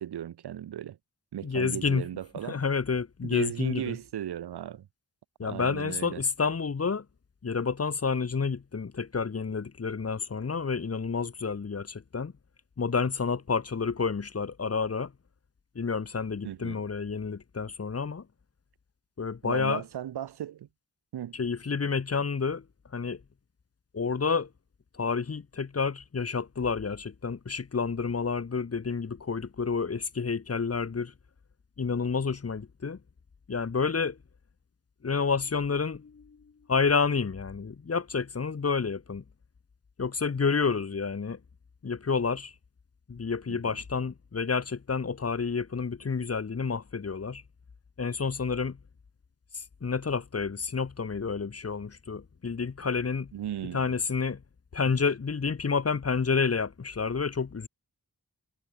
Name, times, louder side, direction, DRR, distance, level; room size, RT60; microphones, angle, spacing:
voice 1, 0.0-1.0 1.3-2.6 3.2-4.9 5.4-6.2 16.4-16.8 19.4-20.7 21.1-21.4 43.5-43.8 53.3-53.9 54.8-54.9, right 11 dB, 90° right, 0.5 m, -36 dB
voice 2, 1.4-2.1 2.5-4.0 5.4-7.0 7.4-12.3 12.8-15.1 15.7-18.2 19.2-19.8 21.3-22.6 22.9-23.2 23.9-24.5 24.9-31.1 31.8-33.0 33.5-34.2 35.0-36.4 36.7-39.2 40.0-41.4 41.8-42.5 43.1-47.4 48.0-48.8 49.5-53.3 53.7-54.4 54.7-57.7, left 5 dB, 40° left, 0.8 m, -29 dB
wide cardioid pair, 85°, 38 cm